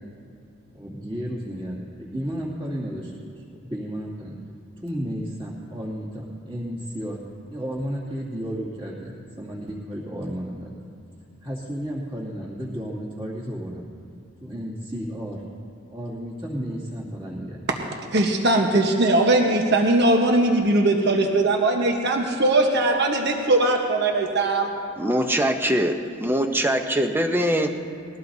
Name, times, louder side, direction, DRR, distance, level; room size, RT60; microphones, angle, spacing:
voice 1, 0.7-3.1 3.5-4.4 4.8-7.2 7.5-10.7 11.4-13.8 14.4-15.4 15.9-17.6, equal, 25° right, -5 dB, 2.5 m, -32 dB
voice 2, 18.1-24.7, right 2 dB, 55° right, 2 dB, 1.2 m, -20 dB
voice 3, 25.0-27.8, equal, 10° right, 5 dB, 0.7 m, -23 dB
21.0 x 17.0 x 2.8 m, 2.7 s
head